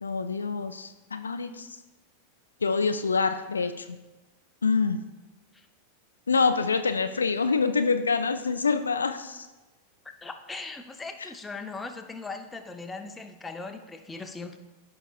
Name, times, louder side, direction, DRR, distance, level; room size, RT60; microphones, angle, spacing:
voice 1, 0.0-1.7 2.6-3.9 4.6-5.0 6.3-9.5, left 4 dB, 75° left, 9 dB, 0.4 m, -26 dB
voice 2, 10.0-14.6, left 3 dB, 10° left, 6 dB, 0.6 m, -39 dB
14.0 x 5.6 x 2.4 m, 1.1 s
figure-of-eight pair, 90°, 0 cm